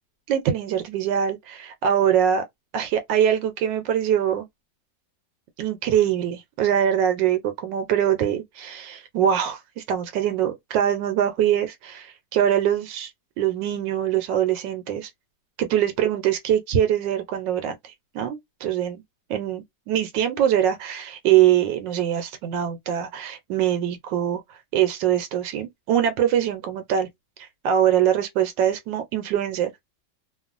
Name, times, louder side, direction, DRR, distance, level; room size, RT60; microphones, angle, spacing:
voice 1, 0.3-2.4 2.7-4.5 5.6-13.1 13.4-15.1 15.6-19.0 19.3-24.4 24.7-27.1 27.6-29.7, right 10 dB, 80° right, 1.2 m, -23 dB
3.0 x 2.2 x 2.4 m
omnidirectional pair, 1.9 m